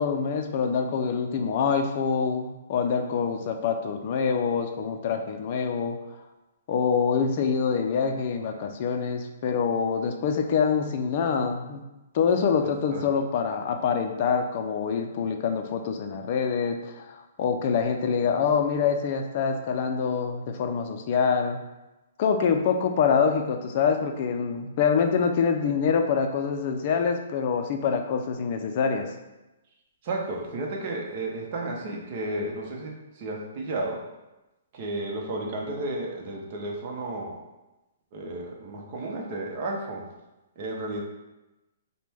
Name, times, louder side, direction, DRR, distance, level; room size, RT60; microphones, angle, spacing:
voice 1, 0.0-6.0 6.7-11.8 12.1-21.6 22.2-29.1, left 6 dB, 40° left, 5 dB, 0.4 m, -25 dB
voice 2, 30.0-34.0 34.7-37.4 38.1-40.0 40.6-41.0, right 2 dB, 40° right, 0 dB, 0.8 m, -32 dB
5.0 x 2.2 x 3.4 m, 1.0 s
hypercardioid pair, 155°, 0 cm